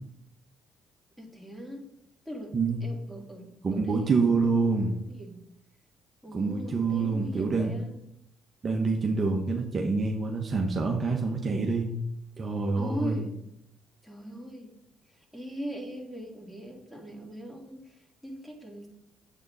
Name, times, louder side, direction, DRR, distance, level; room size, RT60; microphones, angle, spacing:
voice 1, 1.2-1.9 2.3-2.5 2.8-4.7 5.1-5.4 6.2-8.0 12.8-13.3 14.0-14.7 15.1-18.9, equal, ahead, -1 dB, 3.6 m, -40 dB
voice 2, 3.6-5.0 6.3-7.7 8.6-11.9 12.4-13.2, right 4 dB, 40° right, 1 dB, 1.4 m, -26 dB
8.9 x 8.0 x 4.3 m, 0.77 s
supercardioid pair, 65°, 0 cm